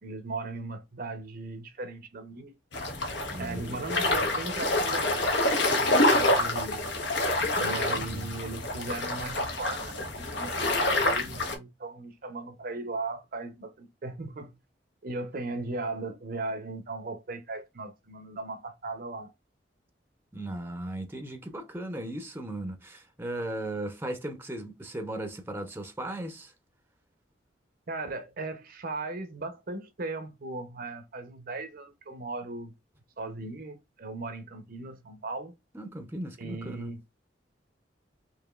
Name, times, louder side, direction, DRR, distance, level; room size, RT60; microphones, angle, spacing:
voice 1, 0.0-2.6 3.4-6.8 7.5-14.6 15.0-19.3 27.9-32.7 33.2-35.5 36.4-37.0, right 3 dB, 55° right, 0.7 m, -37 dB
sound 1, 2.7-11.5, left 2 dB, 70° left, 1.1 m, -27 dB
voice 2, 3.3-3.8 7.4-8.3 20.3-26.5 35.7-36.9, right 1 dB, 15° right, 0.7 m, -37 dB
4.8 x 2.9 x 2.3 m
head